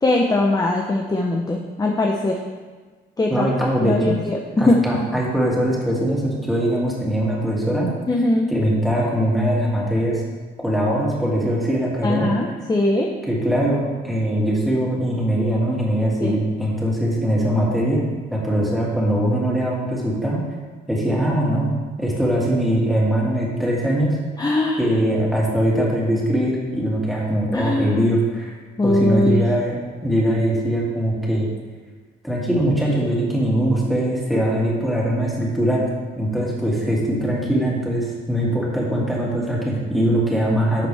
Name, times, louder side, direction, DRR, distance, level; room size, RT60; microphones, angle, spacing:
voice 1, 0.0-2.4 3.2-3.5 3.8-4.4 4.7-4.8 8.1-8.5 12.0-13.1 16.2-16.3 24.4-24.8 27.5-28.0 28.8-29.4, left 2 dB, 20° left, 1 dB, 0.8 m, -20 dB
voice 2, 3.3-4.1 4.6-7.9 8.5-10.2 10.6-12.3 13.3-18.0 18.3-20.4 20.9-21.7 22.0-24.2 24.8-28.5 28.8-31.5 32.2-35.8 36.2-40.9, right 1 dB, ahead, -5 dB, 2.6 m, -21 dB
11.0 x 5.9 x 3.4 m, 1.4 s
cardioid pair, 90°, 20 cm